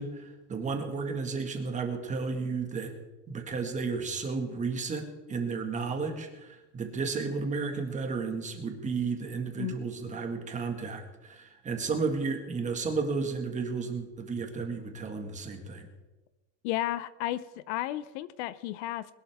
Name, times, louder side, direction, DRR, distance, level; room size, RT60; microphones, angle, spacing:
voice 1, 0.0-2.9 3.3-15.9, right 4 dB, 20° right, 4 dB, 1.9 m, -33 dB
voice 2, 16.6-19.1, left 14 dB, 75° left, 16 dB, 0.8 m, -33 dB
21.0 x 12.0 x 3.6 m, 1.1 s
cardioid pair, 155°, 35 cm